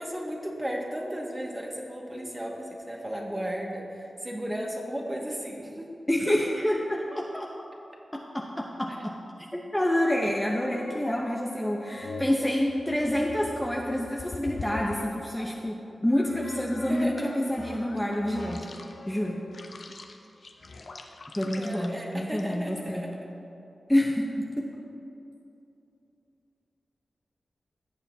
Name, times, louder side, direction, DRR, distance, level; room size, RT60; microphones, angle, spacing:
voice 1, 0.0-5.9 16.9-17.3 21.6-23.2, equal, 20° right, -1 dB, 1.9 m, -35 dB
voice 2, 6.1-7.5 8.1-9.1 9.5-18.7 19.1-19.4 21.3-23.1 23.9-24.7, left 1 dB, 10° left, -1 dB, 0.9 m, -28 dB
sound 1, 10.6-15.6 16.1-22.8, left 3 dB, 65° left, 0.8 m, -42 dB
16.5 x 6.9 x 2.8 m, 2.8 s
cardioid pair, 45°, 0 cm